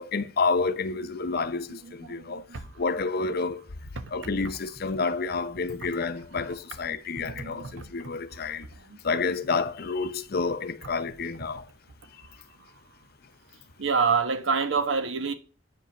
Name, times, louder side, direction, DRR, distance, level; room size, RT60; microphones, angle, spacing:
voice 1, 0.0-2.4 2.8-3.6 4.1-8.7 9.0-11.7, left 4 dB, 55° left, 0.7 m, -29 dB
voice 2, 1.7-2.6 4.0-4.1 7.2-7.9 8.9-9.0 13.8-15.3, right 5 dB, 75° right, 1.0 m, -28 dB
8.7 x 4.9 x 6.0 m
head